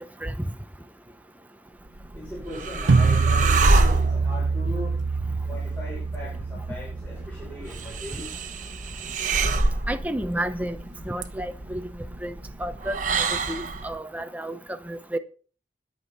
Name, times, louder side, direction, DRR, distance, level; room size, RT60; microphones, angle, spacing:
sound 1, 1.9-14.0, right 2 dB, 45° right, 1.2 m, -28 dB
voice 1, 2.1-4.9 5.5-8.3, left 1 dB, 10° left, 6.3 m, -39 dB
sound 2, 2.9-7.9, right 4 dB, 75° right, 0.5 m, -24 dB
voice 2, 9.9-10.8 11.0-11.8 12.2-12.3 12.6-13.0 13.5-15.2, right 1 dB, 10° right, 0.7 m, -31 dB
21.5 x 7.3 x 4.1 m
head